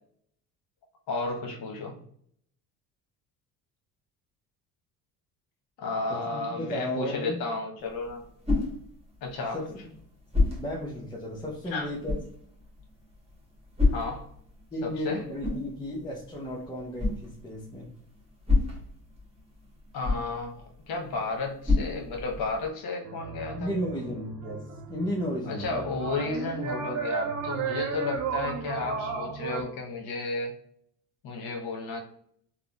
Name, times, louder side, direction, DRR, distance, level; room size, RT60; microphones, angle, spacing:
voice 1, 1.1-2.0 5.8-8.3 9.2-9.6 11.7-11.9 13.9-14.3 14.8-15.3 19.9-23.7 25.5-30.5 31.2-32.0, left 3 dB, 60° left, 2 dB, 0.9 m, -33 dB
voice 2, 6.1-7.4 9.5-9.7 10.6-12.2 14.7-17.9 23.5-25.8, equal, 10° left, -5 dB, 0.6 m, -34 dB
sound 1, 7.8-22.7, left 3 dB, 15° right, 1.1 m, -32 dB
sound 2, 23.0-29.6, right 5 dB, 40° right, 0.6 m, -34 dB
3.6 x 2.0 x 2.2 m, 0.64 s
hypercardioid pair, 70°, 42 cm